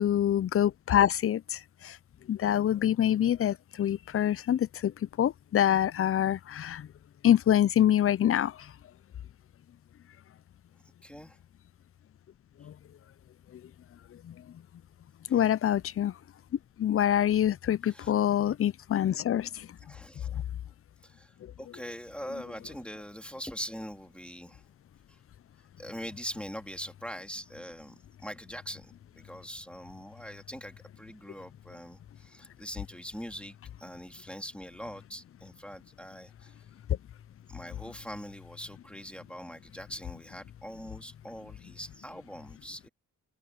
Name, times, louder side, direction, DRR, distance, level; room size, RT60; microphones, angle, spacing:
voice 1, 0.0-2.0 2.3-4.9 5.2-6.9 7.2-8.5 12.6-12.7 14.2-14.3 15.3-16.1 16.8-19.7 20.3-20.4, left 10 dB, 45° left, 0.4 m, -25 dB
voice 2, 11.0-11.4 15.3-15.5 17.8-18.1 19.8-20.4 21.0-24.6 25.1-25.2 25.8-36.6 37.5-42.9, equal, 5° left, 2.9 m, -43 dB
cardioid pair, 65°, 32 cm